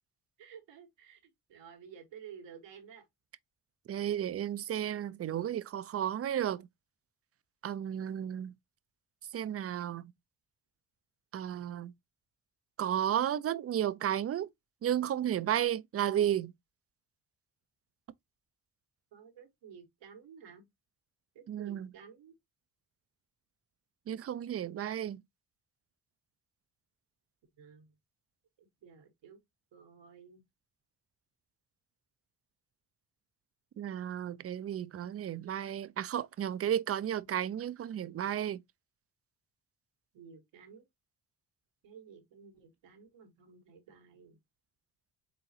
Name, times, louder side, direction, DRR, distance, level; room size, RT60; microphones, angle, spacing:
voice 1, 0.4-1.2 1.5-3.0 19.1-20.6 21.3-22.3 27.6-27.9 28.6-29.4 29.7-30.4 37.2-37.3 40.1-40.8 41.8-44.4, right 7 dB, 90° right, 1.3 m, -53 dB
voice 2, 3.9-6.7 7.6-8.5 9.3-10.1 11.3-11.9 12.8-14.5 14.8-16.5 21.5-21.9 24.1-25.2 33.8-38.6, right 10 dB, 35° right, 0.4 m, -33 dB
4.1 x 3.9 x 2.7 m
supercardioid pair, 55°, 43 cm